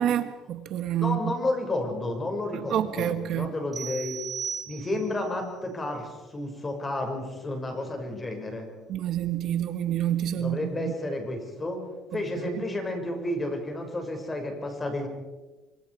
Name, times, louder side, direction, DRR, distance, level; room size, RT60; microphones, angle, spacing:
voice 1, 0.0-1.3 2.7-3.5 8.9-10.9 12.4-12.6, right 11 dB, 60° right, 1.3 m, -28 dB
voice 2, 1.0-4.2 4.7-8.7 10.4-11.8 12.1-15.1, left 1 dB, 20° left, 6.1 m, -31 dB
sound 1, 3.7-5.2, right 7 dB, 30° right, 3.1 m, -36 dB
26.0 x 26.0 x 4.9 m
cardioid pair, 115°, 0 cm